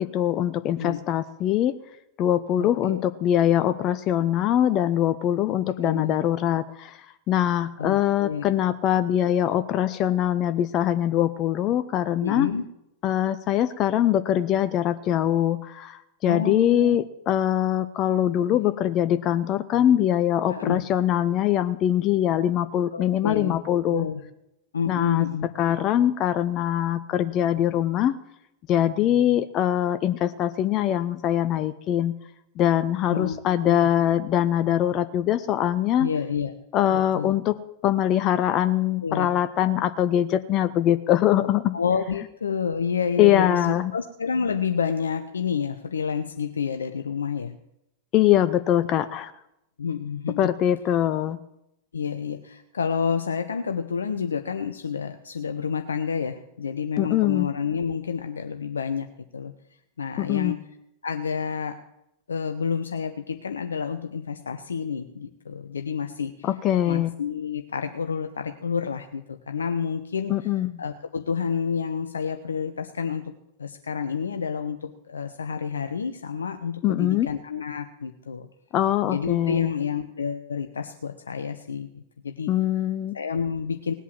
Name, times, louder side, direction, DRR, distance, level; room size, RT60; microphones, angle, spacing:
voice 1, 0.0-1.7 2.2-7.0 7.3-12.5 13.0-24.0 24.9-25.3 25.6-28.2 28.7-32.1 32.6-36.1 36.7-37.6 37.8-41.7 43.2-43.9 48.1-49.3 50.4-51.4 57.0-57.5 60.2-60.6 66.4-67.1 70.3-70.7 76.8-77.3 78.7-79.7 82.5-83.1, left 11 dB, 35° left, 13 dB, 0.6 m, -23 dB
voice 2, 2.6-3.0 5.4-5.5 5.8-6.2 7.8-8.5 12.2-12.7 16.3-17.0 18.6-18.7 20.5-20.8 22.9-23.6 23.9-24.2 24.7-25.5 33.1-33.8 36.0-36.5 36.9-37.4 39.0-39.3 41.7-47.5 49.8-50.5 51.9-59.1 59.3-59.5 60.0-60.6 61.0-61.8 62.3-66.5 66.9-78.5 79.1-82.8 83.1-83.9, left 6 dB, 70° left, 8 dB, 0.7 m, -29 dB
18.5 x 8.3 x 7.5 m, 0.84 s
figure-of-eight pair, 90°, 0 cm